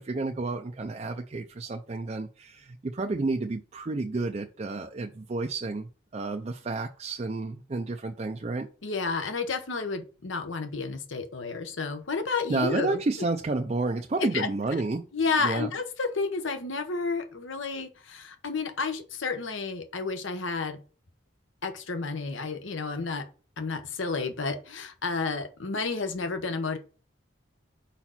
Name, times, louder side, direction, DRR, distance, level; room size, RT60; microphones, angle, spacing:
voice 1, 0.0-8.7 12.5-15.1 15.4-15.7, right 3 dB, 35° right, 4 dB, 0.4 m, -30 dB
voice 2, 8.8-13.0 14.2-14.5 15.1-20.8 21.6-23.2 23.6-26.8, left 4 dB, 75° left, 7 dB, 1.0 m, -31 dB
5.0 x 4.4 x 5.7 m, 0.36 s
head